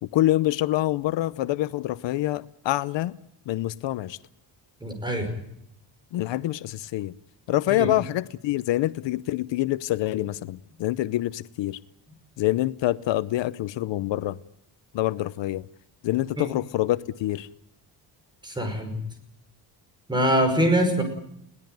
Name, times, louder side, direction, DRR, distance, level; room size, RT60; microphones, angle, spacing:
voice 1, 0.0-3.1 3.5-4.2 6.1-7.1 7.5-11.8 12.4-14.4 14.9-15.7 16.0-17.5, left 15 dB, 80° left, 0.8 m, -26 dB
voice 2, 4.8-5.3 7.7-7.9 18.4-19.0 20.1-21.0, equal, 10° right, 5.5 m, -23 dB
21.5 x 17.0 x 9.2 m
cardioid pair, 160°, 44 cm